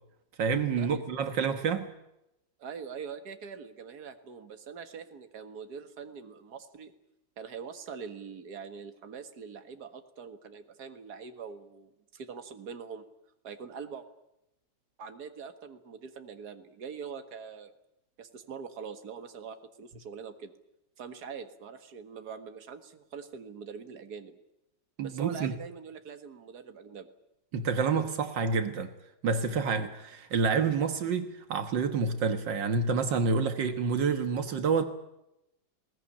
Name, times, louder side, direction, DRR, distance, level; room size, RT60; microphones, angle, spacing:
voice 1, 0.4-1.9 25.0-25.5 27.5-28.9 29.2-34.9, right 5 dB, 80° right, 2.0 m, -28 dB
voice 2, 2.6-6.9 7.4-13.1 13.4-14.1 15.0-17.7 18.2-20.5 21.0-24.4 25.0-27.1, right 6 dB, 60° right, 2.1 m, -43 dB
21.0 x 19.0 x 9.9 m
omnidirectional pair, 1.9 m